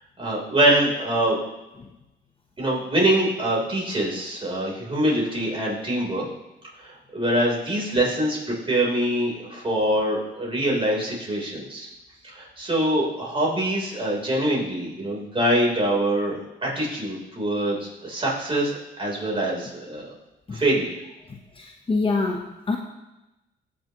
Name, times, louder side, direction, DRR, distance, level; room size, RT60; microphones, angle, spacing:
voice 1, 0.2-1.4 2.6-6.2 6.8-11.9 12.2-20.1 20.5-21.0, right 1 dB, 25° right, -3 dB, 3.6 m, -24 dB
voice 2, 21.6-22.8, left 3 dB, 25° left, 2 dB, 0.9 m, -25 dB
18.0 x 6.2 x 3.0 m, 1.0 s
cardioid pair, 90°, 20 cm